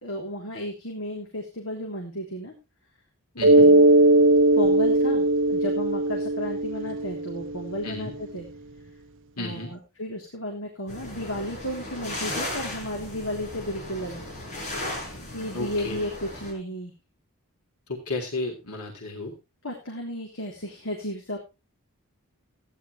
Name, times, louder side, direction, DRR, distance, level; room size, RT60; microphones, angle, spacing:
voice 1, 0.0-2.5 3.3-3.9 4.5-8.5 9.4-14.2 15.3-16.9 19.6-21.4, equal, 60° left, 0 dB, 3.4 m, -33 dB
voice 2, 3.4-3.7 7.8-8.1 9.4-9.8 15.5-16.0 17.9-19.3, left 2 dB, 90° left, 1 dB, 3.4 m, -33 dB
Mallet percussion, 3.4-7.9, right 2 dB, 55° right, 0.7 m, -19 dB
sound 1, 10.9-16.5, left 1 dB, 35° left, 5.7 m, -36 dB
15.0 x 11.0 x 3.3 m, 0.26 s
head